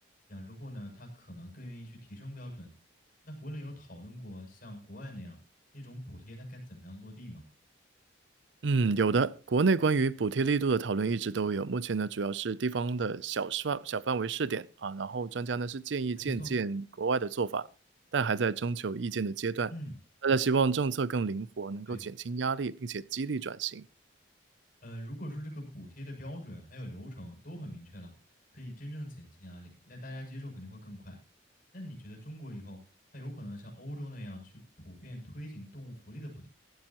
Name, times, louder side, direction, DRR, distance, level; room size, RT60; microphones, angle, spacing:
voice 1, 0.3-2.7 3.2-5.4 5.7-7.4 16.2-16.5 19.7-20.0 21.9-22.0 24.8-28.1 28.5-31.2 31.7-32.8 33.1-36.5, equal, 45° left, 7.0 m, -43 dB
voice 2, 8.6-17.7 18.1-19.7 20.2-23.9, right 4 dB, 70° right, 0.5 m, -29 dB
16.5 x 14.5 x 3.0 m
head